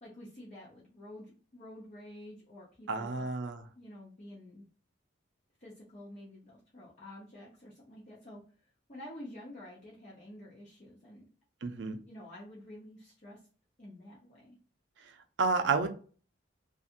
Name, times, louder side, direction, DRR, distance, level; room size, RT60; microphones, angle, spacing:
voice 1, 0.0-3.3 3.7-4.7 5.6-8.4 8.9-11.3 12.1-13.4 13.8-14.6, left 1 dB, 35° left, -6 dB, 0.7 m, -49 dB
voice 2, 2.9-3.7 11.6-12.0 15.4-15.9, right 4 dB, 65° right, 6 dB, 0.5 m, -30 dB
2.6 x 2.4 x 2.5 m, 0.40 s
head